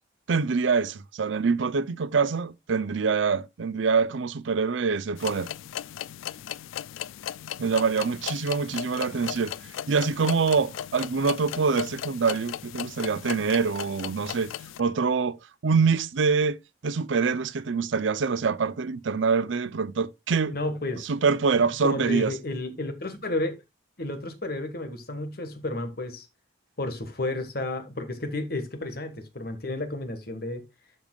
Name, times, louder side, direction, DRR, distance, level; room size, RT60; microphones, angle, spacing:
voice 1, 0.3-5.5 7.6-9.5 9.9-14.5 14.8-15.4 15.6-16.6 16.8-20.5 21.0-22.3, right 5 dB, 75° right, 0.5 m, -25 dB
sound 1, 5.2-14.8, left 10 dB, 90° left, 0.3 m, -37 dB
voice 2, 20.5-21.1 21.8-23.5 24.0-26.3 26.8-30.7, left 2 dB, 50° left, 1.5 m, -32 dB
12.0 x 5.3 x 2.3 m
head